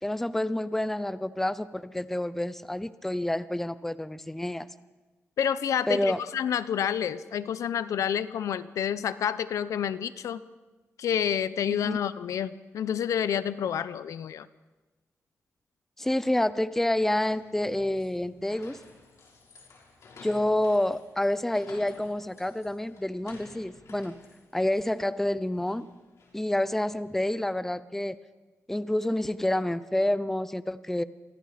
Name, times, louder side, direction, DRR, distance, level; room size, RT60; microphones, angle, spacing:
voice 1, 0.0-4.7 5.9-6.2 11.7-12.0 16.0-18.8 20.2-24.1 24.5-25.9 26.3-28.2 28.7-31.0, left 1 dB, 5° left, 14 dB, 0.7 m, -28 dB
voice 2, 5.4-10.4 11.0-14.5, left 9 dB, 80° left, 15 dB, 0.9 m, -29 dB
sound 1, 16.7-27.1, left 3 dB, 65° left, 6.3 m, -54 dB
29.5 x 24.5 x 5.2 m, 1.2 s
wide cardioid pair, 140°, 5 cm